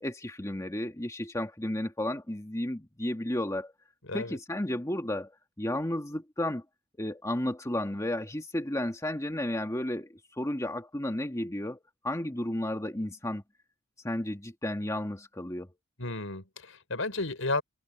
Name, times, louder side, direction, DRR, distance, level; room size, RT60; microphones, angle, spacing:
voice 1, 0.0-3.7 4.1-5.3 5.6-6.6 7.0-13.4 14.0-15.7, left 1 dB, 15° left, 1.9 m, -33 dB
voice 2, 16.0-17.6, left 2 dB, 80° left, 5.7 m, -32 dB
head